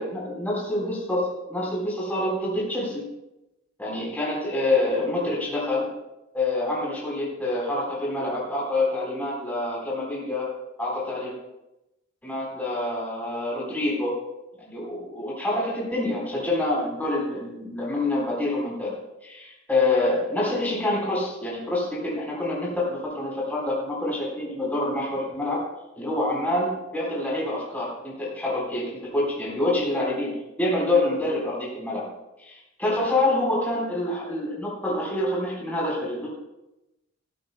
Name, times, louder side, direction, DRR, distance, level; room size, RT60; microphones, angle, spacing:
voice 1, 0.0-3.0 3.8-5.9 6.3-10.5 10.8-11.3 12.2-14.2 14.6-19.0 19.2-25.6 26.0-32.1 32.4-36.3, left 2 dB, 10° left, -6 dB, 4.2 m, -26 dB
16.0 x 14.0 x 2.2 m, 0.95 s
head